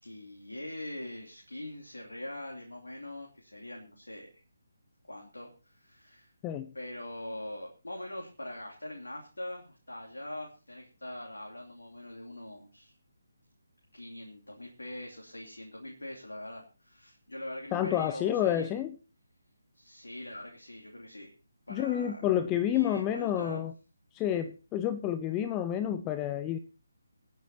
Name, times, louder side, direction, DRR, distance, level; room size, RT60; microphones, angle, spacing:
voice 1, 0.0-4.3 5.1-6.3 6.7-13.0 13.9-18.7 19.7-21.3 21.7-22.2 22.7-23.6, left 1 dB, 75° left, 0 dB, 2.8 m, -43 dB
voice 2, 17.7-19.0 21.7-23.7 24.1-26.6, left 11 dB, 15° left, 12 dB, 0.6 m, -29 dB
25.5 x 9.2 x 2.8 m, 0.35 s
figure-of-eight pair, 145°, 0 cm